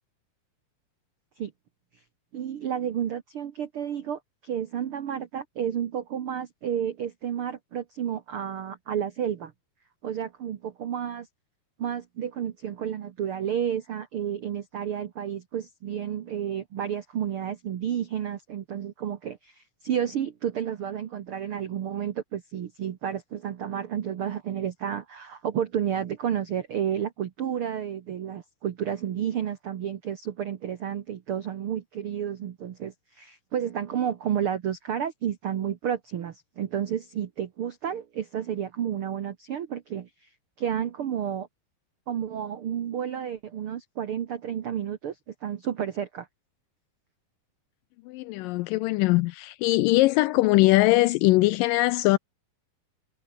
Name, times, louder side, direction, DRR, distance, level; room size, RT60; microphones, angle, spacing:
voice 1, 2.3-9.5 10.0-11.3 11.8-40.3 40.6-41.5 42.1-46.3, right 9 dB, 80° right, 1.2 m, -31 dB
voice 2, 48.1-52.2, left 20 dB, 85° left, 2.0 m, -21 dB
omnidirectional pair, 4.3 m